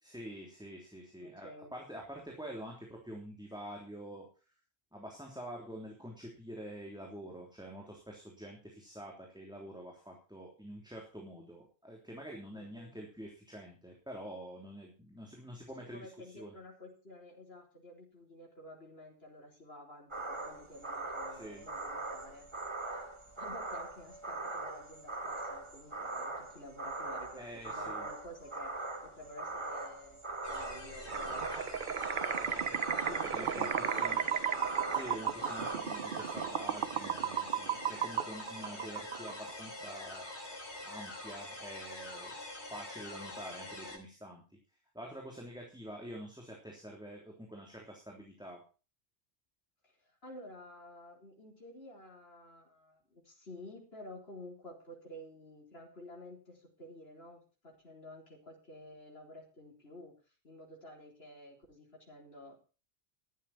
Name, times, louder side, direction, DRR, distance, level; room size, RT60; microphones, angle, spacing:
voice 1, 0.0-4.3 4.9-16.5 21.3-21.6 27.4-28.1 32.4-34.2 34.8-40.3 40.8-42.3 42.7-44.4 44.9-48.6, equal, 5° right, 0 dB, 3.4 m, -47 dB
voice 2, 1.2-1.7 12.5-12.9 15.9-22.5 23.4-31.7 33.1-34.4 49.8-60.1 60.4-62.6, left 1 dB, 65° left, -1 dB, 4.3 m, -51 dB
sound 1, 20.1-35.8, right 2 dB, 25° right, 1.7 m, -41 dB
sound 2, 30.4-44.0, left 2 dB, 85° left, 3.4 m, -46 dB
sound 3, 31.1-39.5, right 8 dB, 50° right, 0.9 m, -35 dB
14.0 x 12.5 x 4.3 m, 0.35 s
omnidirectional pair, 1.1 m